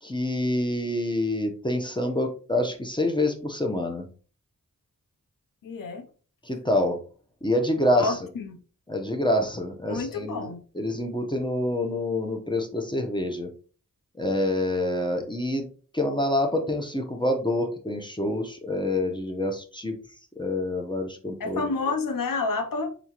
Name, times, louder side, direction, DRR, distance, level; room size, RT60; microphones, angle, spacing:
voice 1, 0.0-4.1 6.4-7.0 7.4-8.3 8.9-10.5 10.7-13.5 14.2-15.7 15.9-19.9 20.4-21.7, left 1 dB, 15° left, 0.8 m, -27 dB
voice 2, 5.6-6.1 7.9-8.6 9.9-10.6 21.4-22.9, left 3 dB, 80° left, 0.6 m, -29 dB
3.7 x 3.6 x 2.9 m
wide cardioid pair, 55°, 32 cm